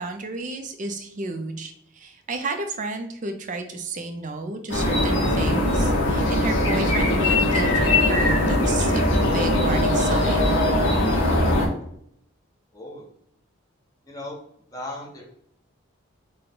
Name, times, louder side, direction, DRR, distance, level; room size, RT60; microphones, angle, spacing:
voice 1, 0.0-9.1 9.3-10.6, right 3 dB, 35° right, 5 dB, 0.4 m, -32 dB
sound 1, 4.7-11.7, left 1 dB, 60° left, 1.0 m, -20 dB
voice 2, 12.7-13.1 14.1-14.4 14.7-15.2, left 1 dB, 15° left, -2 dB, 0.8 m, -36 dB
3.8 x 2.2 x 3.6 m, 0.70 s
head